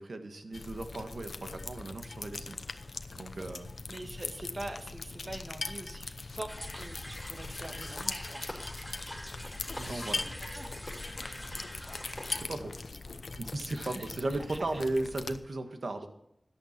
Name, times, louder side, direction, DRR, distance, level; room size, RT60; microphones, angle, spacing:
voice 1, 0.0-2.8 3.1-3.7 9.7-10.2 12.4-12.7 13.3-16.1, right 2 dB, 75° right, 6 dB, 1.6 m, -36 dB
sound 1, 0.5-15.4, left 3 dB, 80° left, 0.8 m, -41 dB
voice 2, 3.9-8.5 9.8-10.7 11.9-12.0 13.7-14.8, right 1 dB, 50° right, 4 dB, 2.1 m, -44 dB
sound 2, 6.5-12.4, equal, 10° left, 5.0 m, -43 dB
14.0 x 10.5 x 4.4 m, 0.80 s
wide cardioid pair, 45°, 0 cm